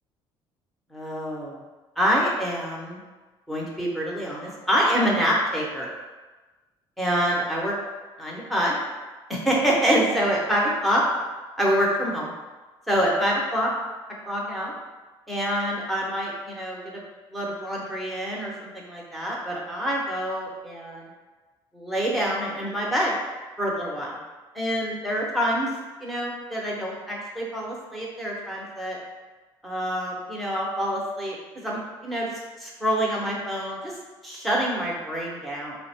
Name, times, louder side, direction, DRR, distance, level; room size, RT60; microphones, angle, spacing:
voice 1, 0.9-1.6 2.0-3.0 3.5-5.9 7.0-7.7 8.2-8.8 9.3-11.0 11.6-12.3 12.9-13.7 14.3-14.7 15.3-17.0 17.3-21.1 21.7-23.1 23.6-24.2 24.5-25.7 26.0-29.0 29.6-31.4 31.6-33.9 34.2-35.8, equal, ahead, -4 dB, 1.0 m, -26 dB
4.1 x 2.2 x 4.3 m, 1.3 s
cardioid pair, 120°, 10 cm